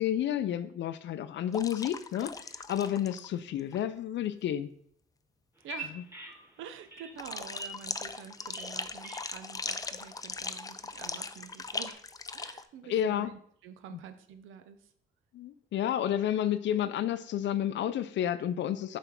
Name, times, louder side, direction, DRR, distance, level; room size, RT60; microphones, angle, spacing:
voice 1, 0.0-2.4 2.7-4.7 6.0-6.1 12.9-13.3 13.9-14.0 15.3-19.0, left 10 dB, 65° left, 14 dB, 0.5 m, -30 dB
sound 1, 1.5-3.3 3.6-3.8 7.2-12.6, left 4 dB, 20° left, 0.4 m, -39 dB
Bird vocalization bird call bird song, 5.6-11.9, equal, 10° right, 1.9 m, -48 dB
voice 2, 5.6-6.0 6.6-12.0 12.3-14.8, right 8 dB, 85° right, 10 dB, 0.7 m, -47 dB
7.0 x 3.4 x 4.4 m, 0.64 s
cardioid pair, 90°, 20 cm